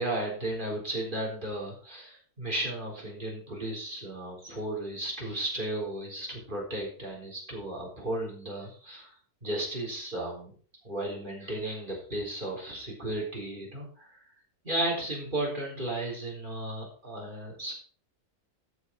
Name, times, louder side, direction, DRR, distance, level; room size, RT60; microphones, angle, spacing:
voice 1, 0.0-9.1 9.4-10.5 10.8-14.3 14.6-17.7, right 1 dB, 30° right, -2 dB, 4.1 m, -34 dB
13.5 x 7.3 x 4.7 m, 0.43 s
omnidirectional pair, 1.6 m